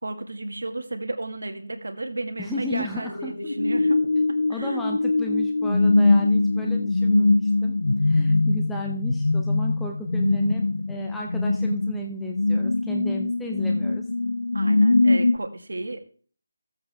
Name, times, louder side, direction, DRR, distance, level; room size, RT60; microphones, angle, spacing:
voice 1, 0.0-4.0 4.5-4.8 14.5-16.1, right 2 dB, 85° right, 7 dB, 1.8 m, -33 dB
voice 2, 2.4-3.3 4.2-4.3 4.5-7.7 8.0-14.0, left 1 dB, 5° left, -1 dB, 0.5 m, -34 dB
sound 1, 3.1-15.4, left 2 dB, 80° left, 0.3 m, -22 dB
13.5 x 7.9 x 3.4 m, 0.42 s
figure-of-eight pair, 175°, 0 cm